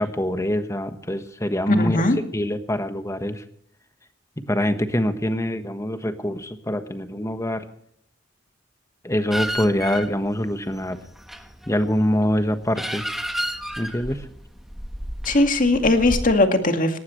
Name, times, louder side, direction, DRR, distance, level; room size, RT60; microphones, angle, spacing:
voice 1, 0.0-2.0 2.3-3.4 4.5-7.7 9.0-11.0 11.7-13.0 13.8-14.3, left 1 dB, 15° left, 9 dB, 1.3 m, -24 dB
voice 2, 1.7-2.2 15.2-17.0, left 2 dB, 45° left, 6 dB, 2.1 m, -19 dB
sound 1, 9.3-16.3, equal, ahead, 1.3 m, -32 dB
19.0 x 18.0 x 3.2 m, 0.66 s
head